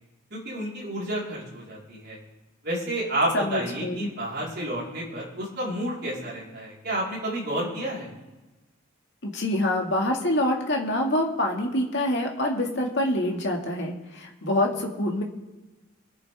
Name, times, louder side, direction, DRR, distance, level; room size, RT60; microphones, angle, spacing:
voice 1, 0.3-2.2 2.6-8.1, right 1 dB, 50° right, -6 dB, 4.3 m, -30 dB
voice 2, 3.3-4.1 9.2-15.2, left 1 dB, 55° left, 1 dB, 2.1 m, -26 dB
24.0 x 9.1 x 3.5 m, 1.1 s
head